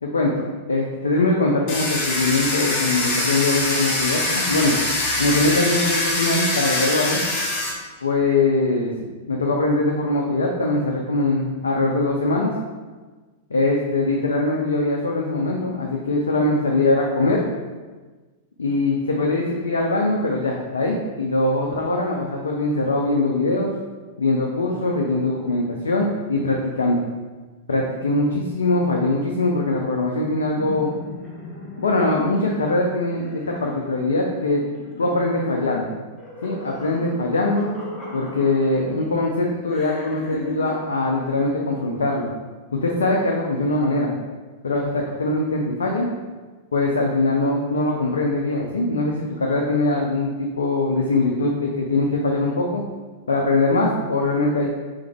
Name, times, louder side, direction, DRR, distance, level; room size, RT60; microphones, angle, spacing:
voice 1, 0.0-4.8 5.2-7.2 8.0-8.9 9.3-12.5 13.5-17.4 18.6-23.7 24.2-27.0 27.7-30.9 31.8-34.6 35.0-35.9 36.4-37.7 38.1-42.3 42.7-44.1 44.6-46.1 46.7-52.8 53.3-54.7, left 2 dB, 75° left, -1 dB, 0.4 m, -22 dB
Domestic sounds home sounds, 1.7-7.7, left 2 dB, 40° left, 1.3 m, -23 dB
sound 1, 30.6-39.1 39.7-40.8, left 2 dB, 15° left, 1.0 m, -38 dB
3.5 x 3.4 x 3.4 m, 1.3 s
figure-of-eight pair, 95°, 0 cm